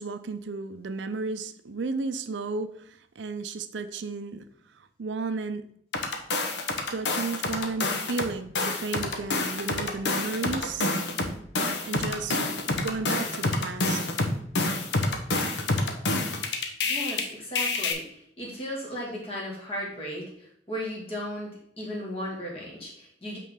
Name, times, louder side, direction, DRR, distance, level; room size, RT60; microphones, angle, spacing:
voice 1, 0.0-4.5 4.7-5.7 6.9-10.9 11.8-12.4 12.7-14.1, right 4 dB, 85° right, 11 dB, 0.5 m, -33 dB
sound 1, 5.9-8.3 8.6-17.2 17.6-17.9, left 2 dB, 75° left, 0.9 m, -27 dB
voice 2, 16.8-21.5 21.8-23.4, equal, 30° left, -3 dB, 2.1 m, -36 dB
8.4 x 3.8 x 3.7 m, 0.68 s
head